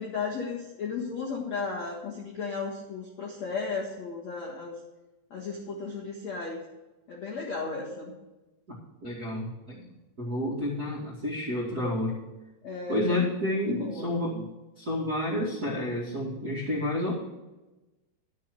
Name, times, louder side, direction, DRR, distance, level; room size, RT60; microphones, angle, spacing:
voice 1, 0.0-4.8 5.3-6.6 7.1-8.1 12.6-13.2 13.7-14.1, left 4 dB, 80° left, -3 dB, 1.5 m, -34 dB
voice 2, 9.0-9.9 10.2-12.2 12.9-14.5 14.8-17.1, left 1 dB, 65° right, -6 dB, 0.9 m, -30 dB
11.5 x 9.6 x 4.6 m, 1.1 s
omnidirectional pair, 5.9 m